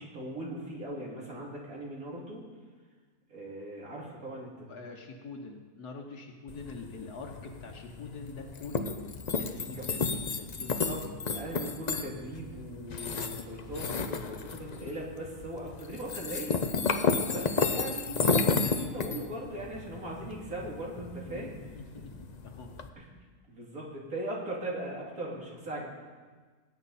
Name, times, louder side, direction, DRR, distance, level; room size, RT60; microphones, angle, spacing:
voice 1, 0.0-2.4 3.3-4.7 9.8-10.1 10.4-16.5 17.3-21.6 21.9-22.0 23.0-23.1 23.5-25.9, right 1 dB, 60° right, -3 dB, 3.3 m, -39 dB
voice 2, 4.7-9.0 9.4-10.7 11.0-11.2 21.3-22.7, left 3 dB, 80° left, 0 dB, 1.7 m, -45 dB
sound 1, 6.5-22.9, left 4 dB, 50° left, 0.5 m, -33 dB
19.0 x 9.5 x 4.2 m, 1.4 s
omnidirectional pair, 1.7 m